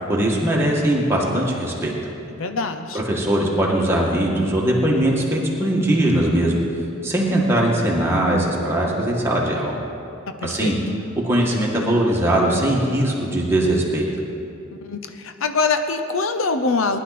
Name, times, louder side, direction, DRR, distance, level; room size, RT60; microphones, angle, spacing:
voice 1, 0.1-1.9 2.9-6.5 7.0-9.8 10.4-10.8 11.2-14.0, right 1 dB, 10° right, -3 dB, 1.9 m, -20 dB
voice 2, 2.4-3.0 10.4-10.8 14.8-17.0, left 4 dB, 65° left, 8 dB, 0.7 m, -24 dB
19.5 x 11.0 x 4.2 m, 2.6 s
head